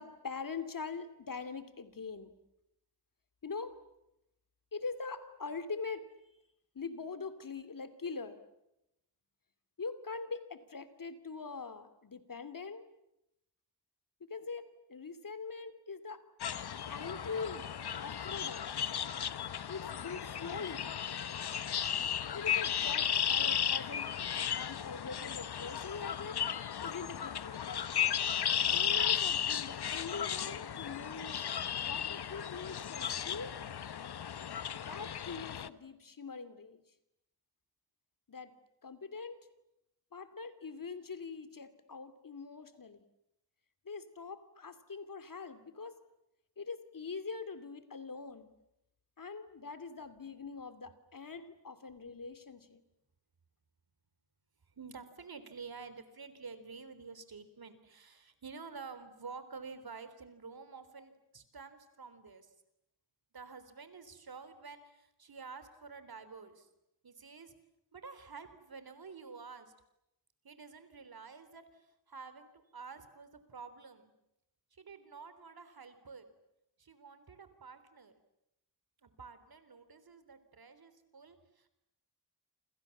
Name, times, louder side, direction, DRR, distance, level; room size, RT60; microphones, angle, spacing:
voice 1, 0.0-2.3 3.4-3.8 4.7-6.1 6.7-8.4 9.8-12.8 14.2-16.2 16.9-17.7 18.0-18.7 19.7-20.9 22.3-26.4 26.8-27.9 28.7-31.4 31.8-33.5 34.8-36.8 38.3-38.5 38.8-39.4 40.1-43.0 43.8-45.9 46.6-48.5 49.2-52.8, left 4 dB, 60° left, 12 dB, 2.7 m, -43 dB
sound 1, 16.4-35.7, left 9 dB, 90° left, 1.0 m, -35 dB
voice 2, 54.7-62.5 63.3-66.7 67.0-67.5 67.9-69.7 70.4-74.1 74.7-76.3 76.8-78.1 79.0-81.7, right 5 dB, 70° right, 12 dB, 3.7 m, -50 dB
28.5 x 27.5 x 7.3 m, 0.85 s
wide cardioid pair, 95°, 38 cm